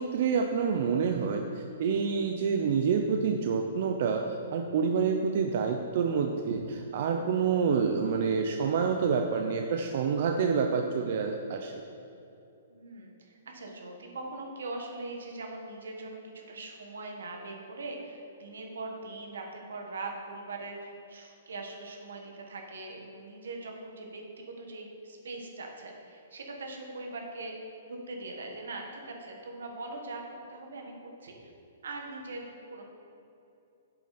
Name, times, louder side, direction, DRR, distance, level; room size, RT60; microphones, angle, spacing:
voice 1, 0.0-6.6 6.9-11.7, right 6 dB, 55° right, 4 dB, 0.5 m, -27 dB
voice 2, 12.7-30.2 30.5-31.5 31.8-32.8, right 2 dB, 85° right, 2 dB, 1.6 m, -41 dB
7.8 x 7.3 x 4.3 m, 2.7 s
hypercardioid pair, 150°, 0 cm